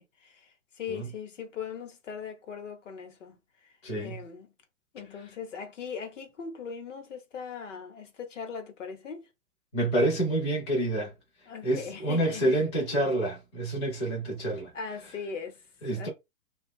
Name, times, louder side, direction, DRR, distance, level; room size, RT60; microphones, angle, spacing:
voice 1, 0.0-3.4 3.6-3.7 4.0-4.5 4.9-9.3 11.5-12.6 14.7-15.6 15.9-16.1, left 6 dB, 60° left, 1.0 m, -40 dB
voice 2, 3.8-4.2 9.7-11.1 11.6-14.7 15.8-16.1, right 1 dB, 20° left, 0.6 m, -28 dB
2.7 x 2.3 x 3.7 m
hypercardioid pair, 175°, 42 cm